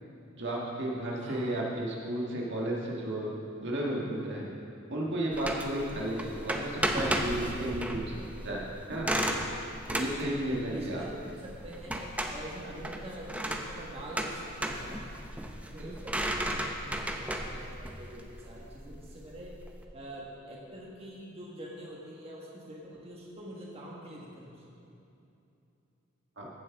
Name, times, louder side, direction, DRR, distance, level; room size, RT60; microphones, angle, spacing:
voice 1, 0.3-4.5 4.9-9.1 9.9-11.0 15.8-15.9 26.4-26.5, right 1 dB, 60° right, -3 dB, 1.6 m, -33 dB
sound 1, 5.3-19.8, right 1 dB, 5° right, 0.6 m, -35 dB
voice 2, 10.7-11.1 11.4-15.0 15.7-19.5 19.9-24.9, right 1 dB, 30° right, -4 dB, 1.4 m, -45 dB
15.0 x 7.4 x 3.5 m, 2.8 s
head